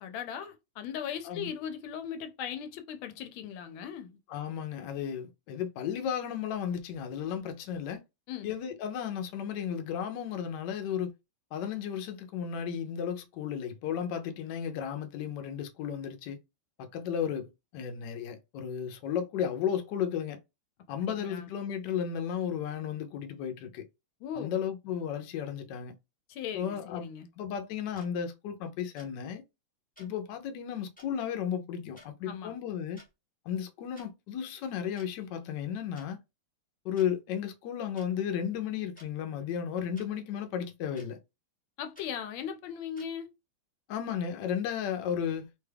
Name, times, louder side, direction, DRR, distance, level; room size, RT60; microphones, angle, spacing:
voice 1, 0.0-4.2 8.3-8.5 21.1-21.5 24.2-24.5 26.3-27.3 32.3-32.5 41.8-43.3, left 8 dB, 90° left, 1.4 m, -38 dB
voice 2, 4.3-8.0 8.4-11.1 11.5-16.4 16.8-20.4 20.9-23.9 24.3-26.0 26.5-27.1 27.4-29.4 30.0-33.0 33.5-36.2 36.8-41.2 43.9-45.5, left 8 dB, 70° left, 1.1 m, -34 dB
sound 1, 27.9-28.1 29.0-29.1 29.9-30.1 31.0-31.1 31.9-32.1 32.8-33.1 33.9-34.1 35.0-35.1 35.9-36.1 37.0-37.1 37.9-38.1 38.9-39.1 39.9-40.1 40.9-41.1 41.9-42.1 42.9-43.1, left 1 dB, 10° left, 0.5 m, -54 dB
3.4 x 2.3 x 3.3 m
omnidirectional pair, 2.2 m